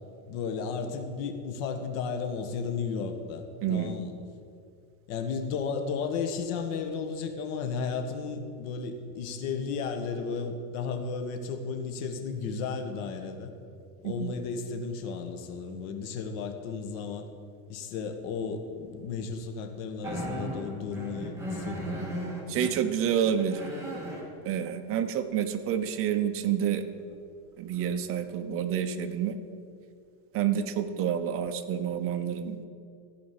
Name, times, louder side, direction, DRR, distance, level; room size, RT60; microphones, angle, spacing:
voice 1, 0.2-4.1 5.1-13.5 14.0-17.3 17.7-21.9, left 5 dB, 70° left, 6 dB, 1.6 m, -34 dB
voice 2, 3.6-4.0 14.0-14.3 22.5-23.7 24.4-26.8 27.6-29.4 30.3-32.7, right 9 dB, 30° right, 8 dB, 0.7 m, -28 dB
sound 1, 20.0-22.7 23.2-24.3 27.1-27.2 27.8-28.1, equal, 5° right, 1.8 m, -36 dB
14.5 x 5.1 x 8.7 m, 2.3 s
supercardioid pair, 155°, 42 cm